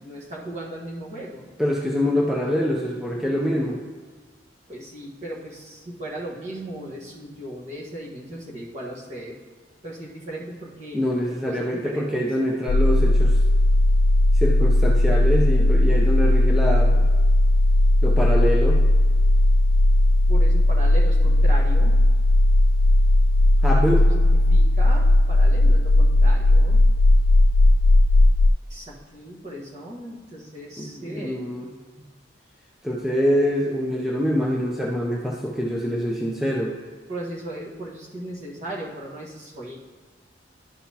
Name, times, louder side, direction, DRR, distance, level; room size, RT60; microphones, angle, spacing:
voice 1, 0.0-1.5 4.7-9.4 9.8-12.3 20.3-22.0 23.9-26.8 28.7-31.4 37.1-39.8, right 1 dB, 35° right, -6 dB, 1.4 m, -37 dB
voice 2, 1.6-3.8 10.9-13.4 14.3-17.0 18.0-18.8 23.6-24.0 30.8-31.7 32.8-36.7, equal, ahead, -3 dB, 0.5 m, -25 dB
sound 1, 12.7-28.5, left 1 dB, 80° left, 0.3 m, -17 dB
11.5 x 5.5 x 2.9 m, 1.5 s
head